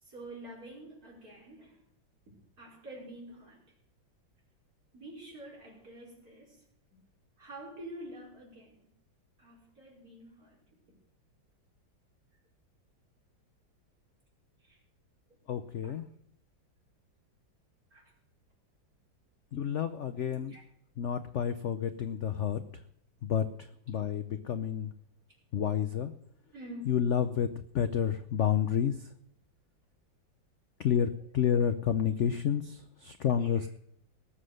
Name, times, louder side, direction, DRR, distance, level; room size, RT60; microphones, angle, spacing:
voice 1, 0.0-1.8 2.6-3.6 4.9-6.6 7.4-8.9 9.4-10.6 10.9-11.0 14.6-14.8 15.8-15.9 17.9-18.1 20.3-20.6 26.5-27.0 33.4-33.5, right 1 dB, 45° right, -3 dB, 5.6 m, -47 dB
voice 2, 15.5-16.1 19.5-20.6 21.0-22.8 23.2-24.9 25.5-26.1 26.9-27.5 27.7-29.1 30.8-33.7, left 8 dB, 70° left, 11 dB, 0.7 m, -30 dB
19.0 x 7.7 x 6.5 m, 0.71 s
omnidirectional pair, 2.1 m